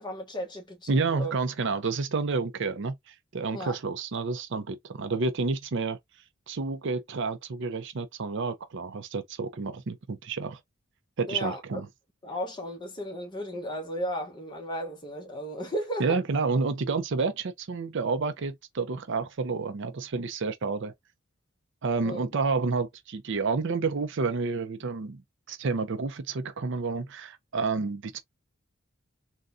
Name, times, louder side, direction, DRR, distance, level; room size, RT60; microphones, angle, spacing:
voice 1, 0.0-1.3 3.5-3.8 11.3-11.8 12.2-16.2 22.0-22.2, equal, 20° left, 0.9 m, -35 dB
voice 2, 0.9-6.0 6.5-10.6 11.2-11.9 16.0-20.9 21.8-25.2 25.5-28.2, right 4 dB, 60° right, 0.5 m, -29 dB
3.6 x 2.2 x 2.5 m
head